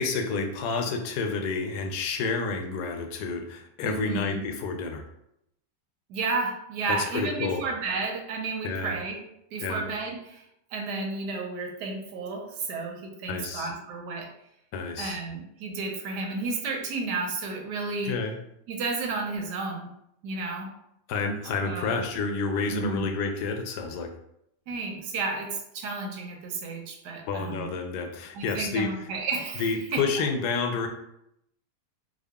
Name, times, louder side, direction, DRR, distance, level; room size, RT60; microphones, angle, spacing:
voice 1, 0.0-5.0 6.9-7.6 8.6-8.9 9.6-9.8 13.3-13.7 14.7-15.2 18.0-18.4 21.1-24.2 27.3-28.9 29.6-30.9, left 4 dB, 80° left, 4 dB, 1.1 m, -29 dB
voice 2, 3.8-4.5 6.1-9.2 9.5-10.4 10.7-14.3 15.0-18.2 18.7-19.9 20.2-20.7 21.6-21.9 22.7-23.1 24.7-27.7 28.3-29.7 29.9-30.0, right 3 dB, 90° right, 1 dB, 1.3 m, -32 dB
3.7 x 2.1 x 3.4 m, 0.77 s
omnidirectional pair, 1.7 m